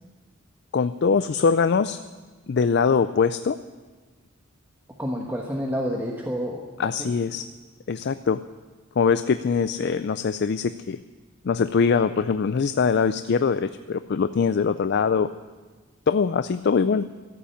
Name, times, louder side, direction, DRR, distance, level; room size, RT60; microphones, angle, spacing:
voice 1, 0.7-2.0 2.5-3.6 6.8-7.5 7.9-8.4 9.0-11.0 11.4-15.3 16.1-17.0, left 5 dB, 50° left, 12 dB, 0.4 m, -22 dB
voice 2, 5.0-7.1, equal, 10° right, -1 dB, 1.2 m, -29 dB
14.5 x 8.5 x 10.0 m, 1.3 s
head